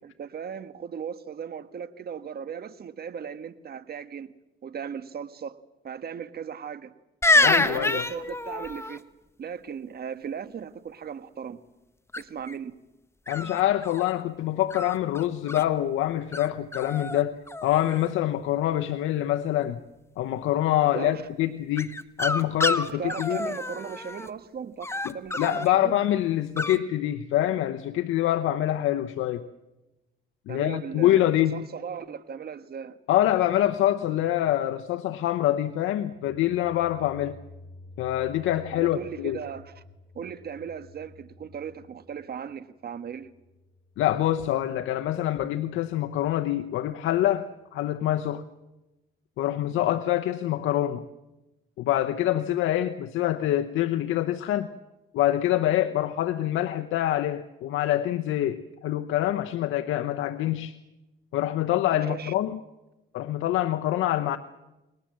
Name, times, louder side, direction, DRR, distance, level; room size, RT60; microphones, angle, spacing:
voice 1, 0.0-4.3 4.6-5.6 5.8-6.9 7.3-9.1 9.4-11.6 12.2-12.7 20.8-21.2 22.9-26.0 30.5-33.0 38.7-39.8 40.1-43.3 61.9-62.3, right 7 dB, 50° right, 1.5 m, -37 dB
sound 1, 7.2-9.0 12.1-12.5 13.3-14.1 14.7-15.6 16.3-16.5 16.7-17.2 17.5-18.1 21.8-24.3 24.8-25.7 26.6-26.8, left 2 dB, 15° left, 1.3 m, -27 dB
voice 2, 7.4-8.1 13.3-19.8 20.2-23.4 25.0-29.4 30.5-31.6 33.1-37.4 38.0-39.4 44.0-48.4 49.4-51.0 51.8-54.7 55.1-60.7 61.3-62.6 63.1-64.4, left 13 dB, 90° left, 0.9 m, -25 dB
sound 2, 36.1-45.0, left 2 dB, 65° left, 6.7 m, -51 dB
29.5 x 20.5 x 7.6 m
cardioid pair, 90°, 20 cm